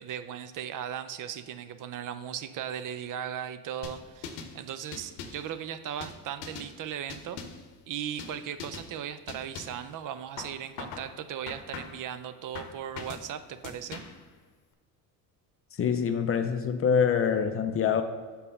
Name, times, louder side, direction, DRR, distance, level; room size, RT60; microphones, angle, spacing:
voice 1, 0.0-7.4 7.9-14.0, right 9 dB, 45° right, 11 dB, 0.5 m, -37 dB
sound 1, 3.8-4.5 4.9-5.5 6.0-6.7 7.1-7.7 8.2-8.3 8.6-8.9 9.3-9.8 10.4-11.1 11.5-12.1 12.5-13.3 13.6-14.2, left 5 dB, 85° left, 0.8 m, -41 dB
voice 2, 15.8-18.0, left 7 dB, 30° left, 8 dB, 0.5 m, -25 dB
5.4 x 4.2 x 5.4 m, 1.6 s
supercardioid pair, 75°, 46 cm